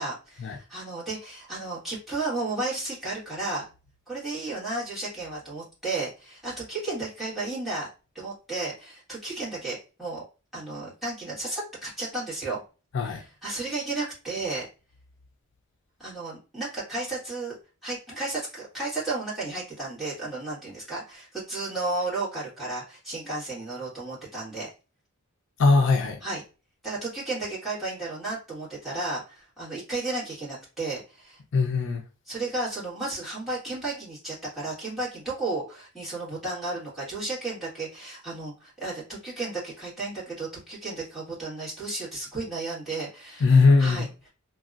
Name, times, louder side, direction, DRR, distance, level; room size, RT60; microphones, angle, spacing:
voice 1, 0.0-3.7 4.1-7.9 8.1-10.2 10.5-12.6 13.0-14.7 16.0-17.6 17.8-24.7 26.2-26.4 26.8-31.4 32.3-44.3, right 2 dB, ahead, 1.6 m, -33 dB
voice 2, 25.6-26.2 31.5-32.0 43.4-44.1, left 4 dB, 60° left, 0.4 m, -20 dB
3.3 x 2.2 x 2.4 m
head